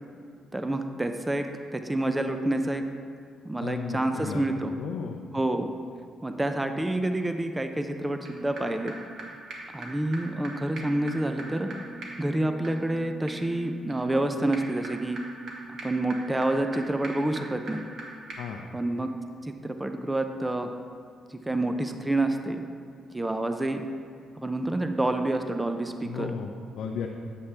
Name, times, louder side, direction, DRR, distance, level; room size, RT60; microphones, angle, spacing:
voice 1, 0.5-1.5 1.7-2.8 3.4-4.7 5.3-5.7 6.2-8.9 9.7-11.7 12.2-15.2 15.7-17.8 18.7-19.1 19.4-20.7 21.3-22.6 23.1-23.8 24.4-26.3, right 1 dB, 15° right, 6 dB, 0.4 m, -28 dB
voice 2, 3.6-4.4 4.8-5.2 18.4-18.6 26.0-27.1, left 6 dB, 80° left, 1 dB, 0.5 m, -34 dB
sound 1, 8.3-8.4 8.6-8.7 8.9-9.0 9.2-9.3 9.5-9.6 9.8-9.9 10.1-10.2 10.4-10.5 10.8-18.0 18.3-18.4, right 2 dB, 70° right, 1.3 m, -41 dB
8.2 x 7.0 x 3.3 m, 2.2 s
cardioid pair, 90°, 0 cm